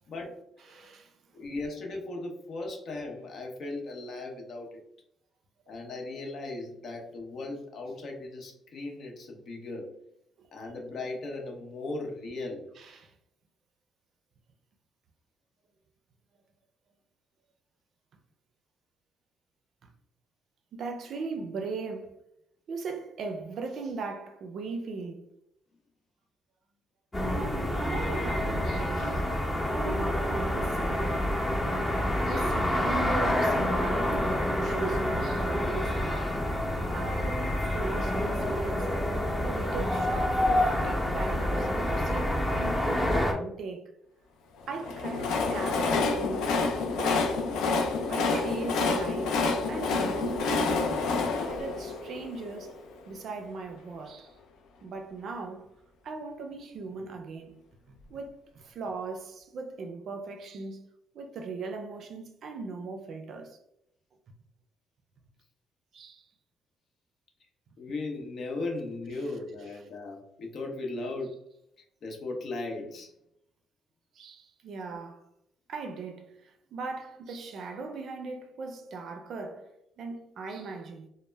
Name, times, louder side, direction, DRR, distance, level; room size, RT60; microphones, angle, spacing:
voice 1, 0.1-0.4 0.7-0.9 1.3-4.8 5.7-9.9 10.5-12.7 27.6-27.8 67.8-71.4 72.0-73.1, left 2 dB, 60° left, 0.7 m, -37 dB
voice 2, 0.7-1.1 12.8-13.1 19.8-19.9 20.7-22.2 22.7-25.3 27.2-29.3 29.7-31.4 32.3-36.3 36.9-38.9 39.4-43.9 44.7-46.7 47.0-47.5 48.1-51.0 51.5-52.7 53.1-54.3 54.8-55.7 56.0-57.6 57.9-60.9 61.1-63.6 65.9-66.3 74.1-75.2 75.7-79.7 80.0-81.1, right 4 dB, 65° right, 0.4 m, -39 dB
sound 1, 27.1-43.3, left 1 dB, 20° left, 0.7 m, -28 dB
Train, 44.7-52.8, left 4 dB, 90° left, 0.4 m, -28 dB
2.1 x 2.0 x 3.2 m
cardioid pair, 90°, 0 cm